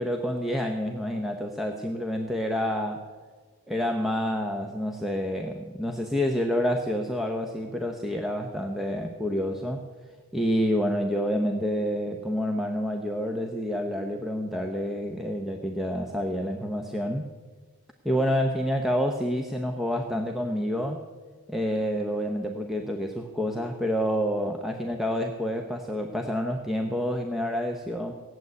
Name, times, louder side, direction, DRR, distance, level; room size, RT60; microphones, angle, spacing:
voice 1, 0.0-3.0 3.7-9.8 10.3-17.3 18.0-21.0 21.5-28.1, equal, ahead, 3 dB, 0.8 m, -28 dB
17.5 x 7.9 x 9.6 m, 1.5 s
head